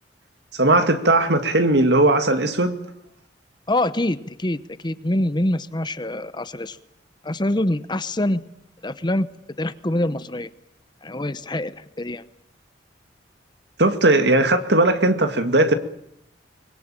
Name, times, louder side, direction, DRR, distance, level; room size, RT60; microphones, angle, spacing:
voice 1, 0.6-2.8 13.8-15.7, right 2 dB, 65° right, 2.2 m, -18 dB
voice 2, 3.7-6.8 7.2-8.4 8.8-9.3 9.6-10.5 11.0-12.2, left 1 dB, 25° left, 0.9 m, -25 dB
24.5 x 21.5 x 9.0 m
head